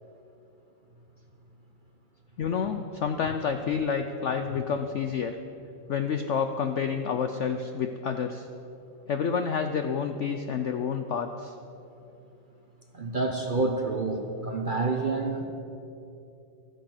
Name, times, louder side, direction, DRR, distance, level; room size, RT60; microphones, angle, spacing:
voice 1, 2.4-5.4 5.9-8.5 9.1-11.5, left 6 dB, 90° left, 7 dB, 0.6 m, -29 dB
voice 2, 12.9-15.5, right 3 dB, 40° right, 3 dB, 0.7 m, -28 dB
13.0 x 9.8 x 7.8 m, 2.8 s
omnidirectional pair, 2.1 m